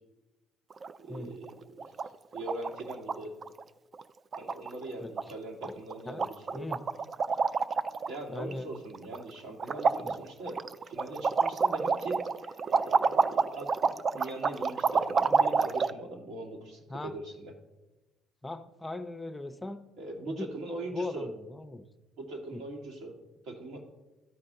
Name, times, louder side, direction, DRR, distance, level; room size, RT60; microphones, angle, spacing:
sound 1, 0.7-1.2 1.4-1.5 1.8-2.1 2.3-3.2 3.4-3.6 3.9-4.0 4.3-4.9 5.2-5.3 5.6-5.9 6.2-8.2 8.5-9.3 9.6-15.9, right 5 dB, 40° right, 0.3 m, -28 dB
voice 1, 1.0-1.9 2.3-3.3 4.3-6.7 8.1-17.5 20.0-21.3 22.2-23.1 23.4-23.8, right 2 dB, 70° right, 1 dB, 1.7 m, -41 dB
voice 2, 6.5-6.8 8.3-8.7 10.0-10.2 16.9-17.1 18.4-19.9 20.3-21.8 22.5-22.6, left 2 dB, 15° left, 8 dB, 0.6 m, -39 dB
13.0 x 4.3 x 3.7 m, 1.0 s
supercardioid pair, 70°, 0 cm